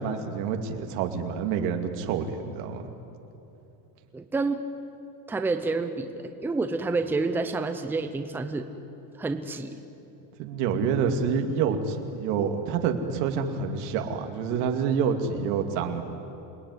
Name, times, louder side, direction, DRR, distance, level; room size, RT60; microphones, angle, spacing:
voice 1, 0.0-2.9 10.4-16.0, right 6 dB, 85° right, 4 dB, 2.5 m, -27 dB
voice 2, 4.1-4.6 5.3-8.7 9.1-9.8, right 3 dB, 5° right, 7 dB, 0.6 m, -29 dB
28.0 x 19.5 x 9.7 m, 2.9 s
cardioid pair, 175°, 45 cm